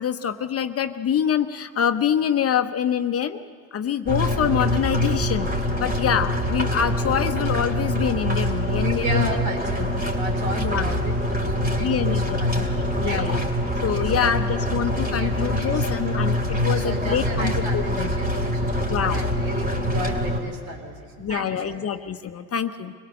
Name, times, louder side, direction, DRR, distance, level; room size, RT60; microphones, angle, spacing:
voice 1, 0.0-3.4 3.7-5.5 5.8-9.4 9.8-9.9 10.6-10.9 11.8-12.7 13.0-13.4 13.8-18.1 18.9-19.2 21.2-22.9, left 8 dB, 35° left, 8 dB, 0.9 m, -25 dB
sound 1, 4.1-20.4, equal, 20° right, 3.2 m, -24 dB
voice 2, 8.8-11.1 11.4-13.3 13.9-14.3 15.0-15.8 16.7-21.9, right 2 dB, 80° right, 4 dB, 3.6 m, -34 dB
25.0 x 17.5 x 6.5 m, 2.2 s
supercardioid pair, 90°, 42 cm